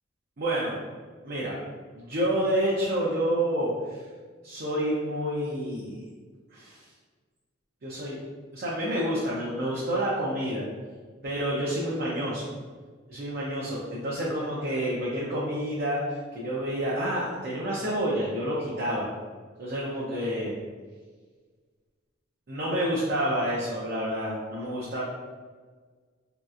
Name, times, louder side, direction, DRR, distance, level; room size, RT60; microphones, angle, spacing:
voice 1, 0.4-0.7 1.2-1.6 1.9-4.0 4.4-6.0 6.5-6.8 7.8-8.2 8.5-10.6 11.2-12.4 13.1-16.0 16.3-19.1 19.6-20.5 22.5-25.0, right 1 dB, 55° right, -6 dB, 0.6 m, -29 dB
3.1 x 2.8 x 2.4 m, 1.5 s
head